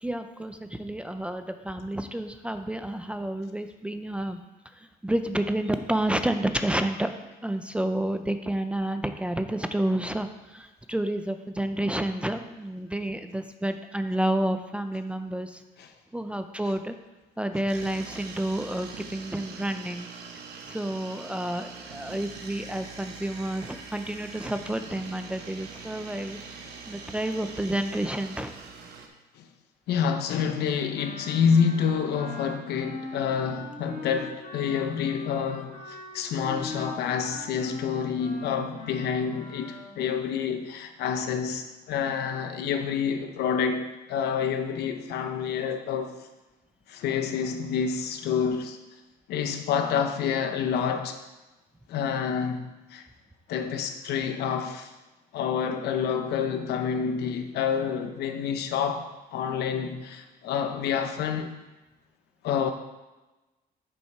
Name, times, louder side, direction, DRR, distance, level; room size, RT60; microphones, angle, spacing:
voice 1, 0.0-4.4 4.8-7.1 7.4-15.6 16.1-17.0 17.4-20.1 20.7-26.4 26.9-28.5, right 1 dB, 5° right, 0.4 m, -30 dB
sound 1, 17.7-29.1, right 5 dB, 75° right, 1.2 m, -43 dB
voice 2, 29.9-46.2 46.9-48.8 49.3-51.2 51.9-53.0 53.5-54.9 55.3-61.5 62.4-62.7, left 7 dB, 75° left, 0.8 m, -28 dB
Wind instrument woodwind instrument, 30.9-39.9, left 3 dB, 50° left, 1.8 m, -41 dB
7.4 x 5.5 x 4.7 m
cardioid pair, 110°, 17 cm